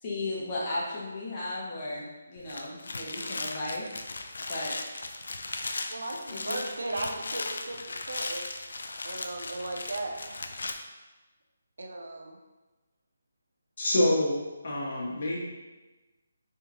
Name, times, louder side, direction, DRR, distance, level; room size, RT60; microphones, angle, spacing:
voice 1, 0.0-3.8 4.5-4.7 6.3-6.6, left 2 dB, 25° left, -6 dB, 1.1 m, -35 dB
sound 1, 2.4-10.7, left 3 dB, 75° left, 0.4 m, -37 dB
voice 2, 5.9-8.5 9.0-10.5 11.8-12.4, right 2 dB, 80° right, 2 dB, 0.7 m, -36 dB
voice 3, 13.8-15.4, left 1 dB, 55° left, -4 dB, 1.3 m, -27 dB
3.5 x 3.5 x 3.0 m, 1.2 s
hypercardioid pair, 165°, 0 cm